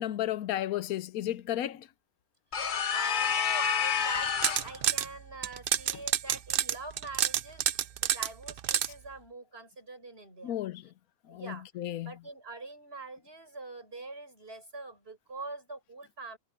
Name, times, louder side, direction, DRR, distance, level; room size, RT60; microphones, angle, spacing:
voice 1, 0.0-1.9 10.4-10.8 11.3-12.1, left 12 dB, 90° left, 1.1 m, -33 dB
sound 1, 2.5-4.8, left 7 dB, 45° left, 0.8 m, -29 dB
voice 2, 2.6-10.6 11.3-11.7 12.0-16.4, right 3 dB, 45° right, 6.5 m, -44 dB
sound 2, 4.2-5.1 5.4-8.9, right 10 dB, 60° right, 0.6 m, -28 dB
omnidirectional pair, 1.5 m